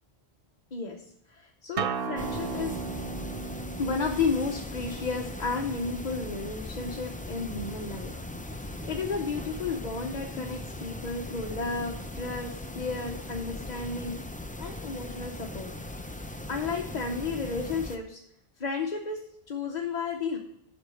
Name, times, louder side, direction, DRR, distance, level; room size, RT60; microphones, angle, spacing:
voice 1, 0.7-1.0 1.3-2.8 3.8-8.1 8.5-14.2 14.6-15.7 16.5-18.2 18.6-19.2 19.5-20.4, left 4 dB, 45° left, 1 dB, 0.9 m, -32 dB
Acoustic guitar, 1.8-7.0, right 6 dB, 65° right, 0.9 m, -37 dB
sound 1, 2.2-18.0, left 1 dB, 10° left, 0.4 m, -39 dB
8.0 x 5.4 x 7.7 m, 0.71 s
omnidirectional pair, 1.0 m